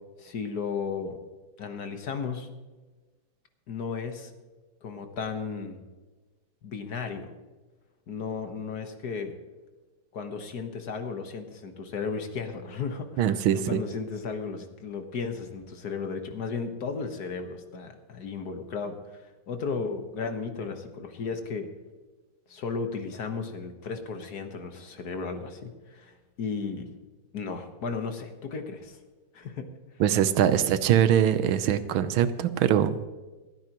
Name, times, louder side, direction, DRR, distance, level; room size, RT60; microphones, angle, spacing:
voice 1, 0.2-1.2 1.6-2.5 3.7-4.3 4.8-5.8 6.6-7.3 8.1-9.4 10.1-21.7 22.5-26.9 27.3-29.0 29.3-29.7, left 5 dB, 55° left, 6 dB, 1.7 m, -34 dB
voice 2, 13.2-13.8 30.0-33.1, right 10 dB, 80° right, 12 dB, 1.6 m, -23 dB
28.0 x 9.4 x 3.0 m, 1.2 s
omnidirectional pair, 2.2 m